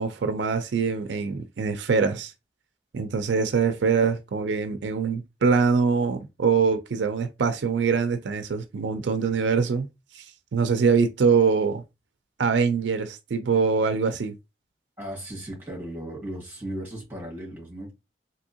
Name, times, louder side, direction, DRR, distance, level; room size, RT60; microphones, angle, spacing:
voice 1, 0.0-2.3 2.9-9.9 10.1-10.2 10.5-11.8 12.4-14.3, right 5 dB, 80° right, 0.4 m, -23 dB
voice 2, 15.0-17.9, right 1 dB, 10° right, 1.6 m, -36 dB
3.5 x 2.8 x 2.7 m
head